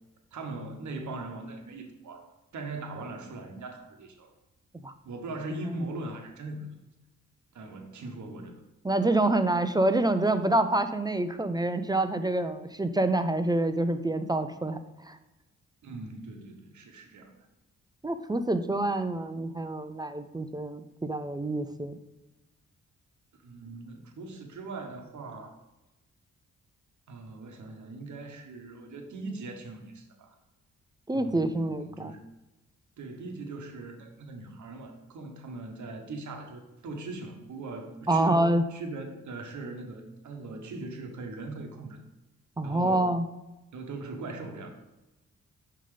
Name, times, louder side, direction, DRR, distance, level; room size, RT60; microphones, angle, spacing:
voice 1, 0.3-4.3 5.0-6.7 7.5-8.6 15.8-17.3 23.3-25.5 27.1-30.4 31.1-32.2 33.0-42.0 42.6-43.1 43.7-44.7, right 2 dB, 65° right, 4 dB, 1.0 m, -40 dB
voice 2, 8.8-14.8 15.1-15.2 18.0-22.0 31.1-32.1 38.1-38.6 42.6-43.3, right 2 dB, 15° right, 9 dB, 0.4 m, -27 dB
5.5 x 3.8 x 4.9 m, 1.0 s
cardioid pair, 60°, 31 cm